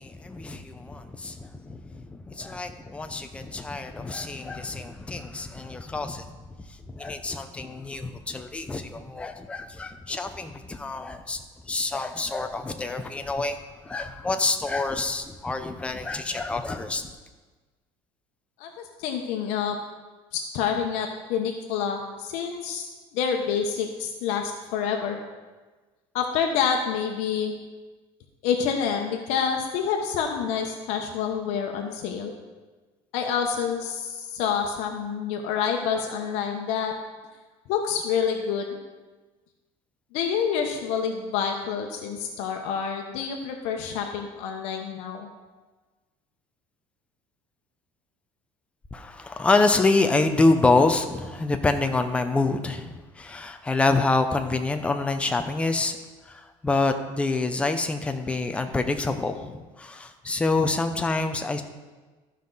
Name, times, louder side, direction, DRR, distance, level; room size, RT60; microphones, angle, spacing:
voice 1, 0.0-6.3 6.9-11.4 11.7-13.6 13.8-17.1 48.9-56.0 56.3-61.6, left 3 dB, 10° left, 7 dB, 0.6 m, -26 dB
voice 2, 18.6-19.8 20.3-22.9 23.1-25.2 26.1-27.6 28.4-32.3 33.1-36.9 37.7-38.8 40.1-45.3, left 7 dB, 75° left, 3 dB, 1.0 m, -28 dB
14.0 x 5.6 x 3.9 m, 1.3 s
cardioid pair, 150°, 11 cm